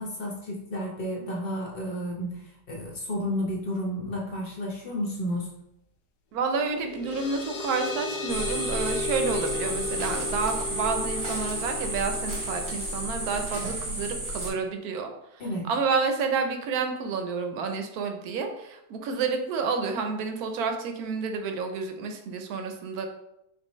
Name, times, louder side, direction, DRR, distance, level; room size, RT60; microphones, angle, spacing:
voice 1, 0.0-5.5 15.4-15.7, equal, 45° left, -2 dB, 0.8 m, -32 dB
voice 2, 6.3-15.1 15.7-23.1, right 4 dB, 75° right, 6 dB, 1.1 m, -29 dB
sound 1, 6.5-13.7, left 5 dB, 90° left, 1.2 m, -36 dB
sound 2, 8.3-14.5, right 2 dB, 35° right, 0.9 m, -32 dB
4.4 x 3.2 x 3.0 m, 0.84 s
omnidirectional pair, 1.7 m